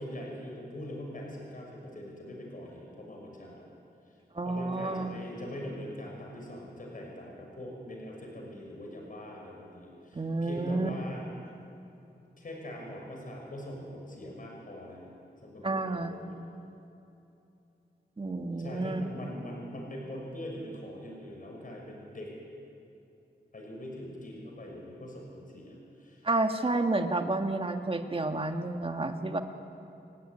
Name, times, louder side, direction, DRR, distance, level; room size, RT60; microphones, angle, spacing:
voice 1, 0.0-3.7 4.4-11.2 12.4-15.1 15.4-16.4 18.6-22.3 23.5-26.3, left 1 dB, 50° left, 0 dB, 6.2 m, -42 dB
voice 2, 4.3-5.2 10.1-10.9 15.6-16.2 18.2-19.0 26.2-29.4, right 2 dB, 30° right, 5 dB, 1.8 m, -30 dB
29.0 x 17.5 x 10.0 m, 2.8 s
wide cardioid pair, 130°, 18 cm